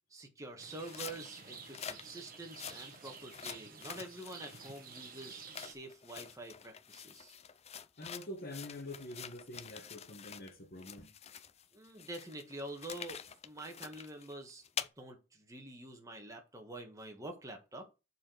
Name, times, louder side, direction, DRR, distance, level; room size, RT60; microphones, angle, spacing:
voice 1, 0.1-7.4 11.7-13.2 13.4-14.6 15.0-17.9, right 2 dB, 15° right, 1.5 m, -47 dB
Rain, 0.6-5.7, right 6 dB, 45° right, 1.3 m, -51 dB
sound 1, 0.7-10.5 10.8-14.9, left 8 dB, 30° left, 0.5 m, -47 dB
voice 2, 8.0-11.1, left 1 dB, 50° left, 1.3 m, -46 dB
7.4 x 4.4 x 6.2 m
head